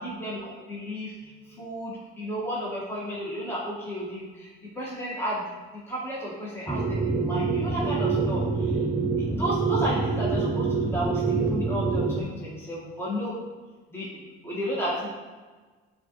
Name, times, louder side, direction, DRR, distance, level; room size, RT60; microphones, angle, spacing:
voice 1, 0.0-5.5 5.9-8.8 9.3-13.4 13.9-15.1, equal, 10° left, -7 dB, 1.3 m, -33 dB
sound 1, 6.7-12.2, right 4 dB, 10° right, 0.3 m, -26 dB
5.8 x 2.5 x 2.9 m, 1.4 s
hypercardioid pair, 60°, 31 cm